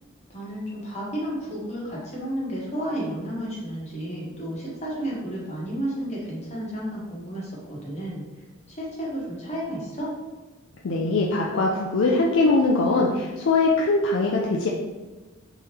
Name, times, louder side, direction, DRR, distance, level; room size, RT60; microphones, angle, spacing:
voice 1, 0.3-8.2 8.7-10.1, right 1 dB, 30° left, -5 dB, 1.1 m, -32 dB
voice 2, 10.8-14.7, left 3 dB, 60° left, -2 dB, 0.4 m, -21 dB
3.5 x 3.0 x 3.0 m, 1.1 s
head